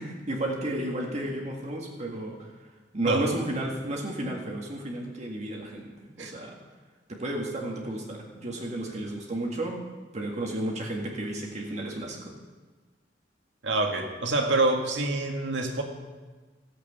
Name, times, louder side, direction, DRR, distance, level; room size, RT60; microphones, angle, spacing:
voice 1, 0.0-2.5 2.9-6.6 7.1-9.8 10.1-12.3, right 1 dB, 40° right, -1 dB, 1.9 m, -32 dB
voice 2, 13.6-15.8, right 2 dB, 80° right, 2 dB, 2.0 m, -26 dB
14.5 x 8.2 x 8.2 m, 1.3 s
head